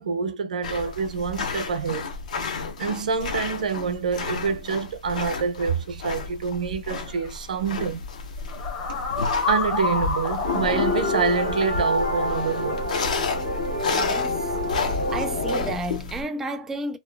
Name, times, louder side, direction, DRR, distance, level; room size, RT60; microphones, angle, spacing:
voice 1, 0.0-2.1 2.8-8.0 9.4-12.9, right 5 dB, 75° right, 0.6 m, -26 dB
sound 1, 0.6-16.2, left 4 dB, 65° left, 0.8 m, -32 dB
sound 2, 7.1-7.2 8.5-13.0, left 4 dB, 30° left, 0.9 m, -30 dB
sound 3, 10.4-15.8, left 2 dB, 90° left, 1.5 m, -27 dB
voice 2, 13.9-14.5 15.1-17.0, right 2 dB, 10° right, 0.3 m, -32 dB
2.8 x 2.3 x 2.2 m
hypercardioid pair, 155°, 4 cm